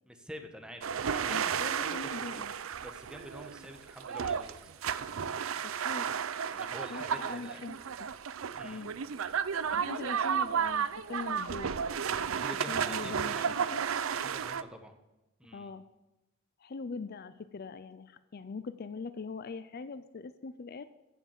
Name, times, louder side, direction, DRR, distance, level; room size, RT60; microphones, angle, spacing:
voice 1, 0.1-2.5 2.8-4.6 6.5-7.7 8.5-8.8 12.3-13.7 14.1-14.9 15.4-15.7, equal, 5° right, 5 dB, 1.1 m, -47 dB
sound 1, 0.8-14.6, right 7 dB, 85° right, 0.5 m, -33 dB
voice 2, 1.3-2.5 5.6-6.1 6.9-7.7 8.0-8.1 8.6-9.0 9.7-11.8 12.7-13.8 15.5-15.8 16.6-20.8, left 4 dB, 50° left, 13 dB, 0.5 m, -42 dB
14.5 x 5.9 x 7.3 m, 1.0 s
head